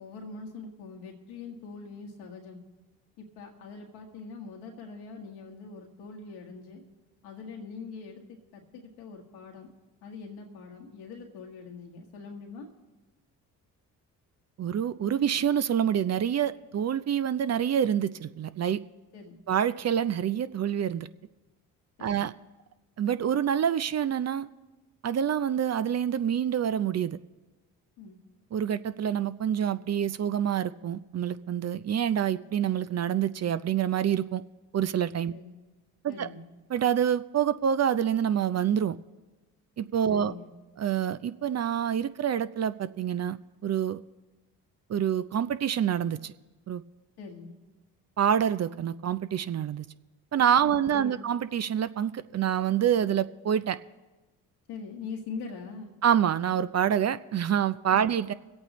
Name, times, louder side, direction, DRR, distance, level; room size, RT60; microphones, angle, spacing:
voice 1, 0.0-2.6 3.2-6.8 7.2-8.2 8.5-9.7 10.0-12.7 19.1-19.4 22.0-22.2 28.0-28.2 35.3-35.6 36.1-36.4 40.1-40.5 47.2-47.5 50.6-51.3 54.7-55.9 57.9-58.1, left 4 dB, 90° left, 1 dB, 1.7 m, -43 dB
voice 2, 14.6-18.8 19.5-21.1 22.0-22.3 23.0-24.5 25.0-27.2 28.5-34.4 34.7-35.3 36.0-36.3 36.7-39.0 39.8-40.3 40.8-43.4 43.6-44.0 44.9-46.3 46.7-46.8 48.2-49.9 50.3-53.8 56.0-58.3, right 9 dB, 40° right, 14 dB, 0.5 m, -27 dB
24.5 x 8.6 x 3.1 m, 1.2 s
hypercardioid pair, 50°, 42 cm